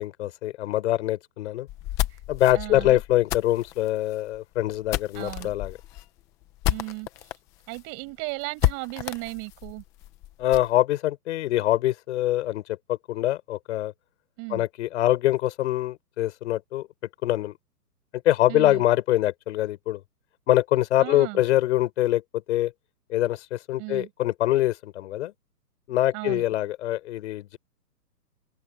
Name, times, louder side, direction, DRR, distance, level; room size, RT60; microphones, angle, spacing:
voice 1, 0.0-1.7 2.3-5.8 10.4-13.9 14.5-16.9 17.2-17.5 18.3-20.0 20.5-22.2 22.5-22.7 23.1-25.3 25.9-27.6, left 14 dB, 45° left, 5.2 m, -24 dB
sound 1, 1.7-7.4 7.7-7.8 8.1-8.2 8.6-10.7, left 15 dB, 5° left, 0.5 m, -30 dB
voice 2, 2.5-3.0 5.2-5.5 6.7-7.1 7.7-9.8 14.4-14.6 18.5-18.8 21.0-21.4 23.8-24.1 26.1-26.4, right 29 dB, 30° right, 6.1 m, -35 dB
hypercardioid pair, 145°, 49 cm